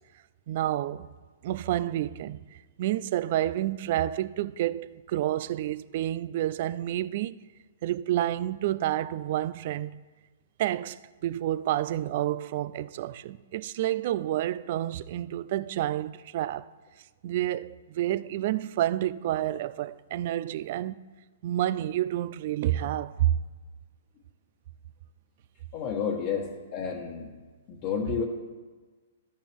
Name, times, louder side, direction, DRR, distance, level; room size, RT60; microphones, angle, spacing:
voice 1, 0.5-1.1 1.4-2.4 2.8-7.4 7.8-10.0 10.6-16.7 17.2-21.0 21.4-23.4 28.1-28.2, right 13 dB, 50° right, 0.4 m, -29 dB
voice 2, 25.7-27.3 27.7-28.2, left 6 dB, 40° left, 1.4 m, -31 dB
13.0 x 8.7 x 3.5 m
hypercardioid pair, 130°, 0 cm